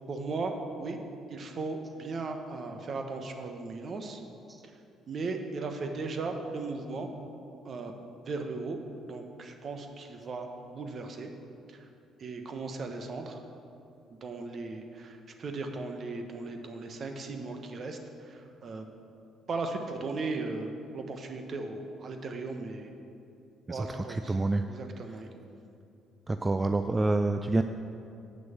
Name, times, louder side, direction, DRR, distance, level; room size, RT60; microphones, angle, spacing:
voice 1, 0.1-1.0 1.3-4.2 5.1-7.1 7.6-7.9 8.3-8.8 9.1-11.3 11.7-11.8 12.2-13.4 14.1-18.9 19.5-22.9 23.7-24.4 24.7-25.3, right 3 dB, 50° right, 5 dB, 1.1 m, -37 dB
voice 2, 23.7-24.6 26.3-27.6, right 2 dB, 25° right, 8 dB, 0.4 m, -28 dB
7.8 x 6.2 x 7.2 m, 2.6 s
hypercardioid pair, 60°, 0 cm